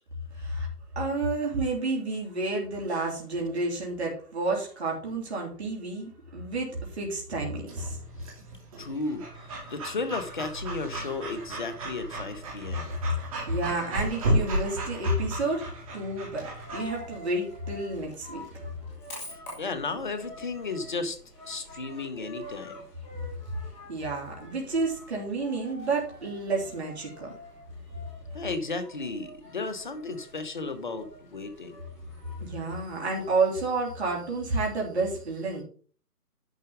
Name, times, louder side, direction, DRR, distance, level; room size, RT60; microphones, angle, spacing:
voice 1, 0.4-0.7 0.9-8.0 13.5-18.4 23.9-27.3 32.4-35.6, right 2 dB, 40° right, -2 dB, 3.2 m, -30 dB
Breathing / Dog, 7.7-16.8, right 1 dB, 20° right, 2.6 m, -34 dB
voice 2, 8.8-12.9 19.3-21.2 21.4-22.8 28.3-31.8, left 3 dB, 30° left, 11 dB, 1.0 m, -34 dB
Coin (dropping), 16.6-33.2, left 1 dB, 5° left, 1.4 m, -47 dB
11.0 x 4.5 x 5.1 m, 0.42 s
figure-of-eight pair, 160°, 47 cm